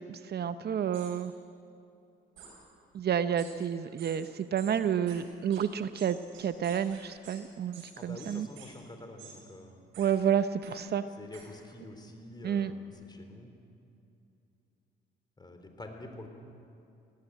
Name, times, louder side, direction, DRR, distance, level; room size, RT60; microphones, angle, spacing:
voice 1, 0.1-1.3 2.9-8.5 10.0-11.0 12.4-12.7, right 8 dB, 55° right, 12 dB, 0.7 m, -30 dB
sound 1, 0.9-1.1 2.4-2.5 3.4-3.5 4.0-4.1 4.6-4.7 5.1-5.2 5.5-5.6 5.9-7.4 7.7-7.9 8.2-8.7 9.2-9.4 9.9-10.1 10.6-10.7 11.3-11.4, right 7 dB, 90° right, 7.5 m, -50 dB
voice 2, 8.0-9.8 11.2-13.5 15.4-16.3, left 1 dB, 20° left, 5 dB, 3.4 m, -47 dB
19.5 x 17.5 x 9.1 m, 2.7 s
cardioid pair, 90°, 20 cm